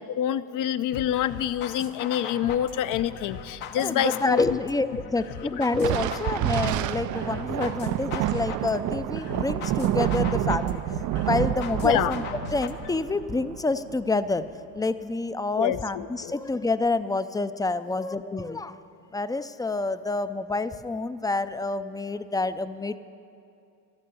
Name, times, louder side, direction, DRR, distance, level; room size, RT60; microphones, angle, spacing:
voice 1, 0.2-4.4 11.8-12.1 15.6-16.3, left 11 dB, 60° left, 13 dB, 0.6 m, -27 dB
sound 1, 0.9-12.9, left 6 dB, 85° left, 1.3 m, -39 dB
voice 2, 3.8-10.8 11.2-12.2 12.5-14.4 14.7-18.8 19.1-23.0, left 3 dB, 10° left, 12 dB, 0.4 m, -27 dB
Thunder, 5.7-14.5, right 14 dB, 55° right, 0.4 m, -29 dB
13.5 x 12.0 x 7.0 m, 2.6 s
supercardioid pair, 95°, 37 cm